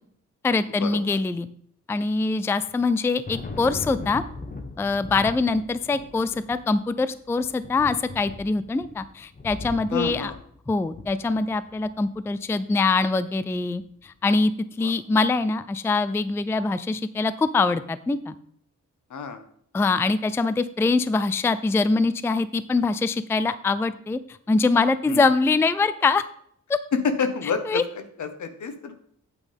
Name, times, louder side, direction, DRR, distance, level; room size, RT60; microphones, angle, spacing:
voice 1, 0.4-1.5 1.9-4.2 4.8-10.3 10.7-14.5 14.8-18.4 19.7-26.2 26.7-26.8 27.7-27.8, left 3 dB, 10° left, 14 dB, 0.3 m, -23 dB
Thunder, 2.6-12.1, left 3 dB, 30° left, 1.1 m, -40 dB
voice 2, 9.9-10.4 14.8-14.9 19.1-19.4 25.0-25.3 26.9-28.9, left 5 dB, 70° left, 8 dB, 1.2 m, -28 dB
8.9 x 8.4 x 3.5 m, 0.65 s
wide cardioid pair, 115°, 30 cm